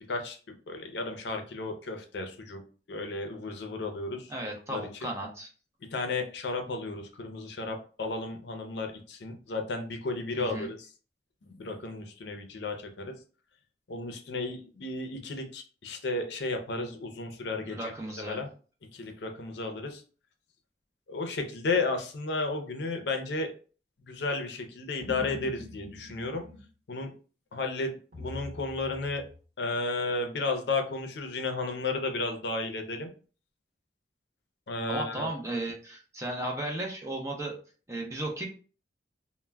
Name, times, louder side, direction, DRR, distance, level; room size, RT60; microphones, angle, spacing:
voice 1, 0.7-2.6 2.9-4.3 4.7-5.1 5.9-10.8 11.4-13.1 13.9-17.8 18.2-18.5 18.9-20.0 21.1-23.5 24.1-26.4 26.9-27.1 27.5-29.2 29.6-33.1 34.7-35.3, left 3 dB, 80° left, 5 dB, 0.5 m, -33 dB
voice 2, 4.3-5.5 10.4-10.7 17.7-18.4 34.9-37.5 37.9-38.5, right 1 dB, 15° right, 0 dB, 0.5 m, -35 dB
sound 1, 25.0-26.7 28.1-29.4, left 2 dB, 50° right, 1.0 m, -44 dB
2.2 x 2.1 x 3.2 m, 0.38 s
head